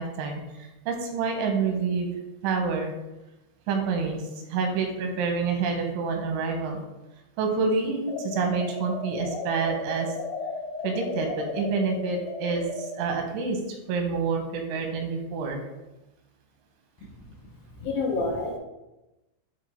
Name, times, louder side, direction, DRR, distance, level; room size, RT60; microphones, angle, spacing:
voice 1, 0.0-2.1 2.4-2.9 3.7-6.8 7.4-10.1 10.8-13.6 13.9-15.6, right 5 dB, 90° right, 3 dB, 3.3 m, -28 dB
sound 1, 8.1-13.0, left 3 dB, 90° left, 2.2 m, -34 dB
voice 2, 17.8-18.6, left 3 dB, 75° left, -1 dB, 2.7 m, -28 dB
9.5 x 3.2 x 3.4 m, 0.99 s
omnidirectional pair, 5.2 m